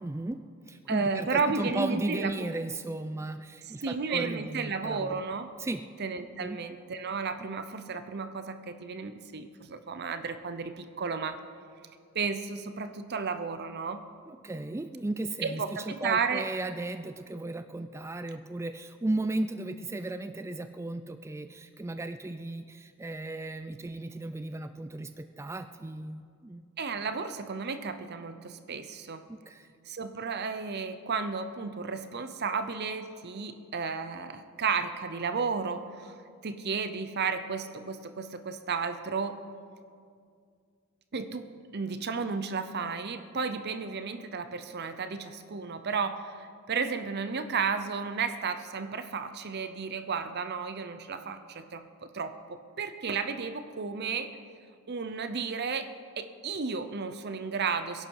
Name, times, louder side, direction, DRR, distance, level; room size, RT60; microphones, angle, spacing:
voice 1, 0.0-5.2 5.6-5.8 6.4-6.6 7.4-7.5 14.3-26.6 29.3-29.7, right 2 dB, 15° right, 10 dB, 0.3 m, -35 dB
voice 2, 0.9-2.3 3.7-5.5 6.0-11.4 12.1-14.0 15.4-16.5 26.8-29.2 29.9-36.1 36.4-39.4 41.1-54.3 54.9-55.9 56.2-58.1, right 5 dB, 50° right, 10 dB, 0.7 m, -33 dB
22.0 x 11.5 x 4.7 m, 2.2 s
head